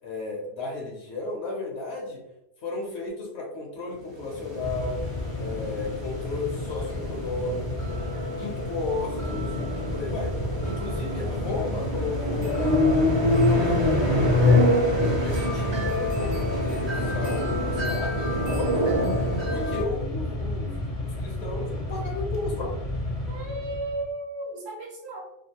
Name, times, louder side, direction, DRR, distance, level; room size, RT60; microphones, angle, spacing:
voice 1, 0.0-2.2 2.6-5.0 5.4-8.0 8.3-10.3 10.6-14.7 15.2-18.9 19.5-22.8, left 3 dB, 70° left, -1 dB, 0.9 m, -34 dB
sound 1, 4.1-19.8, left 1 dB, 40° right, 0.4 m, -26 dB
Mechanisms, 4.6-24.1, left 1 dB, 40° left, 0.6 m, -32 dB
voice 2, 23.3-25.2, right 2 dB, 70° right, -1 dB, 0.8 m, -34 dB
2.5 x 2.3 x 2.7 m, 0.89 s
omnidirectional pair, 1.2 m